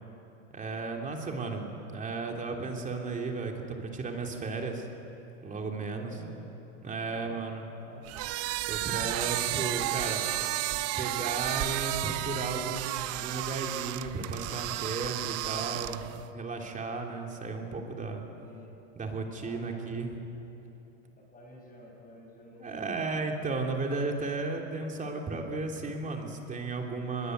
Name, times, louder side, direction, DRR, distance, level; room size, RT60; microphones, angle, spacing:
voice 1, 0.5-4.9 5.4-6.2 6.8-7.6 8.7-10.3 11.0-18.2 18.9-20.2 22.6-27.3, right 3 dB, 20° right, 2 dB, 3.3 m, -34 dB
voice 2, 5.9-6.6 7.0-7.4 7.8-8.1 18.4-18.7 19.4-19.8 21.2-22.9, left 2 dB, 25° left, -2 dB, 7.1 m, -51 dB
sound 1, 8.1-16.3, right 16 dB, 40° right, 0.7 m, -32 dB
24.0 x 21.5 x 8.1 m, 2.9 s
supercardioid pair, 125°, 36 cm